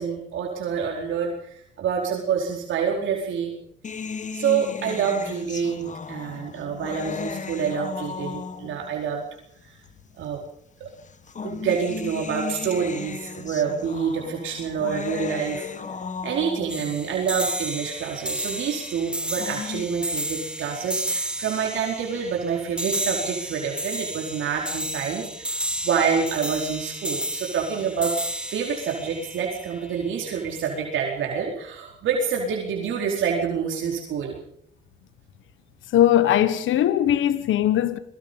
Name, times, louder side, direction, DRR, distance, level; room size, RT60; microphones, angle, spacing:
voice 1, 0.0-3.5 4.3-9.2 9.7-9.8 10.2-10.4 11.4-15.7 16.2-28.1 28.5-34.4, right 7 dB, 75° right, 4.6 m, -27 dB
sound 1, 3.8-8.9 9.9-10.0 11.0-16.9 19.1-19.8, left 5 dB, 40° left, 1.7 m, -35 dB
sound 2, 16.7-30.2, right 1 dB, 5° right, 2.6 m, -32 dB
voice 2, 35.9-38.0, left 11 dB, 80° left, 1.3 m, -20 dB
27.5 x 22.5 x 5.4 m
cardioid pair, 90°, 20 cm